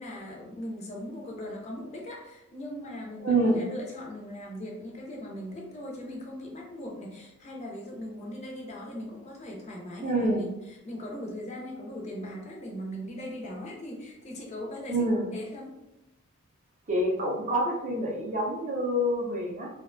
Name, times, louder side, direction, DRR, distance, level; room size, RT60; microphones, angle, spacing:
voice 1, 0.0-15.7, left 1 dB, 30° left, -1 dB, 0.4 m, -39 dB
voice 2, 3.2-3.6 10.0-10.5 14.9-15.3 16.9-19.7, right 1 dB, 35° right, -2 dB, 0.4 m, -27 dB
2.5 x 2.1 x 2.4 m, 0.94 s
head